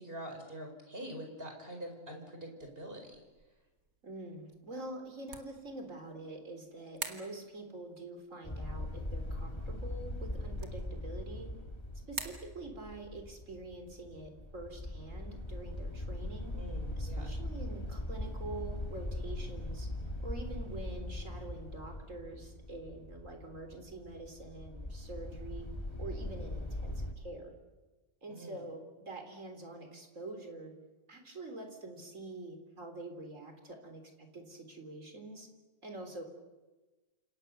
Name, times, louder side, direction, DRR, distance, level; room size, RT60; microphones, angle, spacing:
voice 1, 0.0-3.2 16.5-17.4 28.3-28.6, equal, 40° right, 3 dB, 5.2 m, -45 dB
sound 1, 2.6-16.7, right 4 dB, 90° right, 2.7 m, -51 dB
voice 2, 4.0-11.5 12.1-16.6 17.0-19.9 20.2-25.7 26.0-27.5 28.2-30.7 31.1-35.5 35.8-36.2, right 2 dB, 60° right, 5 dB, 4.0 m, -46 dB
sound 2, 8.4-27.1, left 1 dB, 20° left, 2.1 m, -40 dB
29.5 x 28.0 x 6.8 m, 1.2 s
omnidirectional pair, 1.5 m